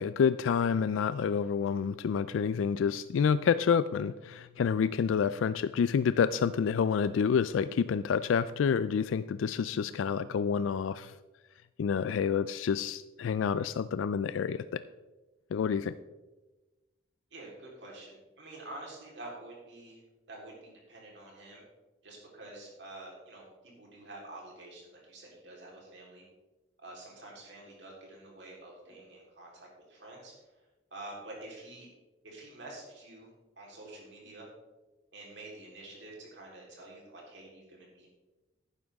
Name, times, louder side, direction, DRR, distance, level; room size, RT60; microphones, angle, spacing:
voice 1, 0.0-11.1 11.8-14.8 15.5-15.9, left 6 dB, 90° left, 14 dB, 0.3 m, -28 dB
voice 2, 17.3-20.0 20.3-21.6 22.0-26.2 26.8-30.3 30.9-31.9 32.2-33.3 33.6-34.5 35.1-38.1, right 2 dB, 65° right, -3 dB, 3.7 m, -48 dB
11.0 x 10.0 x 3.5 m, 1.1 s
head